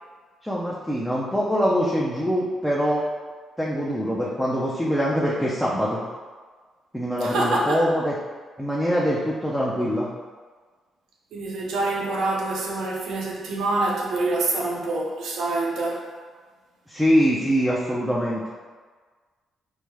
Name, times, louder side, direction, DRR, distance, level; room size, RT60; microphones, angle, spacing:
voice 1, 0.4-3.0 3.6-6.0 6.9-8.1 8.6-10.1 16.9-18.4, equal, 5° left, -6 dB, 0.5 m, -23 dB
voice 2, 7.2-7.8 11.3-16.1, right 2 dB, 80° right, -2 dB, 0.6 m, -26 dB
3.3 x 2.1 x 3.2 m, 1.5 s
supercardioid pair, 60°, 0 cm